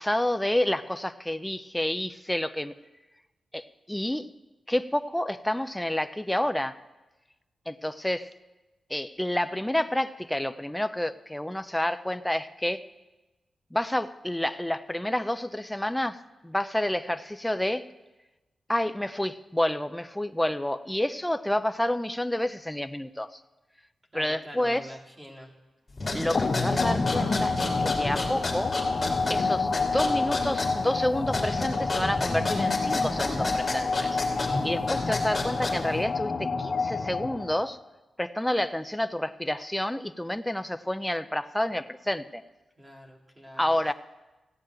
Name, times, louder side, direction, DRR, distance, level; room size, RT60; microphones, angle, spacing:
voice 1, 0.0-2.7 3.5-4.3 4.7-6.8 7.7-8.3 8.9-12.8 13.7-17.9 18.7-23.4 24.1-24.9 26.1-28.7 29.3-37.8 38.2-42.4 43.6-43.9, left 1 dB, 5° left, 10 dB, 0.4 m, -29 dB
voice 2, 24.1-25.5 42.8-43.6, equal, 15° right, 1 dB, 2.1 m, -45 dB
sound 1, 25.9-36.0, left 2 dB, 20° left, 3.0 m, -32 dB
sound 2, 26.3-37.7, left 4 dB, 40° left, 1.0 m, -29 dB
15.5 x 9.1 x 8.8 m, 1.1 s
wide cardioid pair, 160°, 0 cm